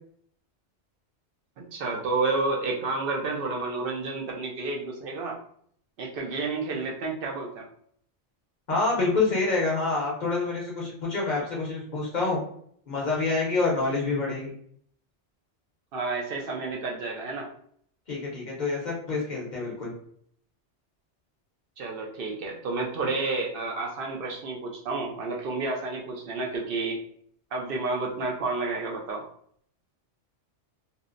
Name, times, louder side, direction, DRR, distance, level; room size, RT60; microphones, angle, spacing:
voice 1, 1.6-5.4 6.0-7.6 15.9-17.5 21.8-27.0 27.5-29.2, right 3 dB, 60° right, -1 dB, 0.6 m, -30 dB
voice 2, 8.7-12.4 12.9-14.5 18.1-19.9, left 3 dB, 45° left, -4 dB, 0.7 m, -27 dB
2.7 x 2.0 x 2.4 m, 0.63 s
omnidirectional pair, 1.2 m